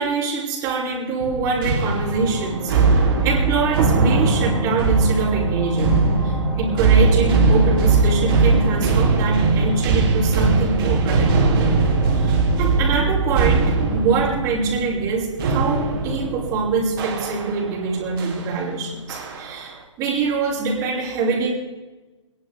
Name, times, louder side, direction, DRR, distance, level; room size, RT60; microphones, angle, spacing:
voice 1, 0.0-11.5 12.1-21.5, right 4 dB, 20° right, -6 dB, 5.8 m, -24 dB
sound 1, 1.2-17.8 18.2-18.5 19.1-19.6, right 3 dB, 45° right, 3.6 m, -20 dB
sound 2, 1.8-16.0, right 1 dB, ahead, 4.8 m, -35 dB
25.0 x 11.0 x 5.2 m, 1.2 s
hypercardioid pair, 140°, 16 cm